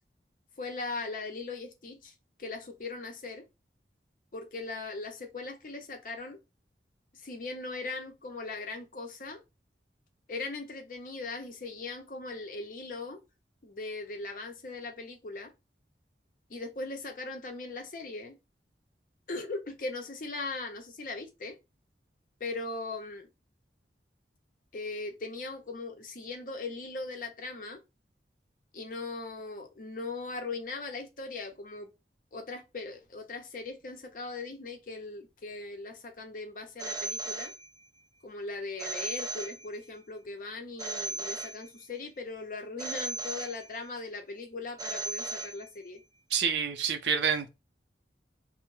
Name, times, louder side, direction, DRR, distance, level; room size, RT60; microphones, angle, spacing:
voice 1, 0.6-2.1 2.4-3.4 4.3-6.4 7.2-9.4 10.3-13.2 13.6-15.5 16.5-18.4 19.3-21.5 22.4-23.3 24.7-27.8 28.7-31.9 32.3-37.5 38.2-46.0, left 3 dB, 50° left, 0.6 m, -39 dB
Telephone, 36.8-38.0 38.8-40.0 40.8-42.0 42.8-44.0 44.8-46.0, right 1 dB, 20° right, 0.3 m, -38 dB
voice 2, 46.3-47.5, right 7 dB, 80° right, 0.5 m, -28 dB
2.2 x 2.0 x 3.1 m
head